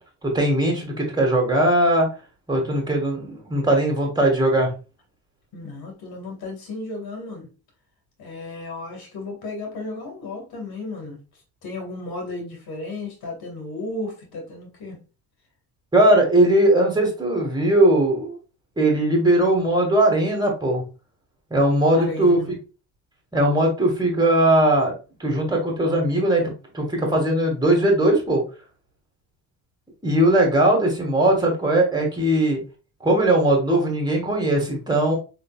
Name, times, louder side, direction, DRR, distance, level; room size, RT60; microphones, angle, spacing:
voice 1, 0.2-2.1 2.5-4.7 15.9-18.4 18.8-20.8 21.5-22.4 23.3-24.9 25.2-28.4 30.0-32.6 33.0-35.2, right 1 dB, 10° right, 2.1 m, -19 dB
voice 2, 5.5-7.5 8.2-11.2 11.6-15.0 21.9-22.6, left 2 dB, 60° left, 2.3 m, -34 dB
3.7 x 3.6 x 2.5 m
supercardioid pair, 80°, 41 cm